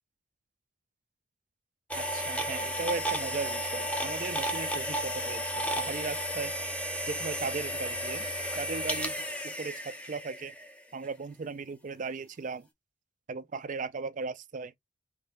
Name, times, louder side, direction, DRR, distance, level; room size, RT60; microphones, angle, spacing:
sound 1, 1.9-10.8, equal, 5° left, 0.6 m, -33 dB
voice 1, 2.0-6.5 7.1-8.3 8.6-9.2 9.4-10.6 10.9-12.7 13.3-14.7, right 4 dB, 40° right, 0.4 m, -37 dB
3.6 x 3.3 x 2.6 m
head